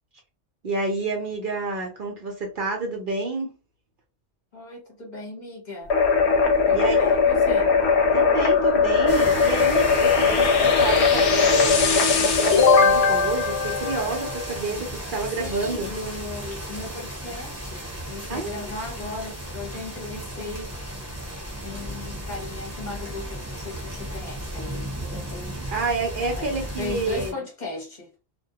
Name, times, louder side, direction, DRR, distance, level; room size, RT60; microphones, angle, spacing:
voice 1, 0.6-3.5 6.7-7.0 8.1-15.9 18.3-18.7 25.7-27.3, right 3 dB, 55° right, 0.7 m, -29 dB
voice 2, 4.5-5.9 6.7-7.7 15.4-20.7 21.6-25.6 26.4-28.1, left 2 dB, 45° left, 0.9 m, -37 dB
sound 1, 5.9-14.5, left 5 dB, 75° left, 0.8 m, -19 dB
sound 2, 9.1-27.3, right 1 dB, 15° right, 0.8 m, -35 dB
2.2 x 2.2 x 2.7 m
omnidirectional pair, 1.2 m